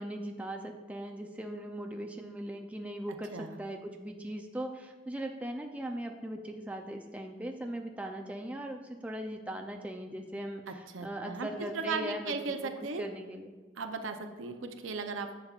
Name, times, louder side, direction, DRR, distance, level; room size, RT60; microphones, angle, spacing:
voice 1, 0.0-13.6, right 1 dB, 5° right, 3 dB, 0.4 m, -39 dB
voice 2, 10.9-13.0 13.8-15.4, right 4 dB, 90° right, 6 dB, 0.6 m, -36 dB
10.5 x 6.9 x 2.4 m, 1.3 s
head